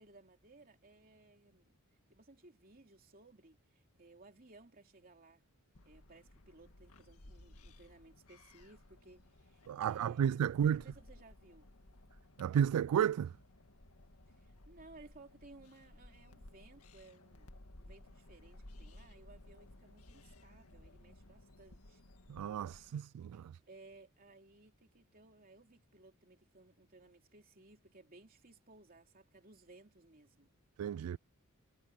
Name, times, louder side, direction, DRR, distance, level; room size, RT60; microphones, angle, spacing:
voice 1, 0.0-1.8 2.1-5.4 5.8-11.7 14.3-22.0 23.7-30.5, right 2 dB, 40° right, 3.1 m, -60 dB
sound 1, 5.7-22.9, left 1 dB, 80° left, 1.9 m, -58 dB
voice 2, 9.7-10.8 12.4-13.3 22.3-23.5 30.8-31.2, right 9 dB, 85° right, 0.3 m, -32 dB
head